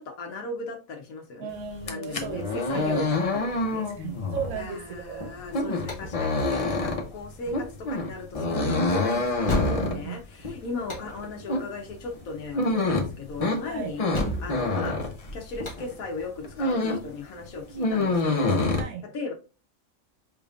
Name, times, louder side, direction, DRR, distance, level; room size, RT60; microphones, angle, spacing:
voice 1, 0.0-1.5 1.8-3.9 4.6-14.0 14.4-15.0 15.3-18.6 19.1-19.3, left 3 dB, 75° left, 1.4 m, -37 dB
voice 2, 1.4-3.1 3.9-5.4 9.8-10.2 13.6-13.9 18.7-19.0, right 7 dB, 85° right, 1.2 m, -36 dB
sound 1, 1.8-15.8 16.2-17.1 17.4-18.8, left 2 dB, 40° left, 0.5 m, -27 dB
sound 2, 5.5-18.6, left 1 dB, 25° left, 1.0 m, -37 dB
5.1 x 3.3 x 2.4 m
omnidirectional pair, 1.5 m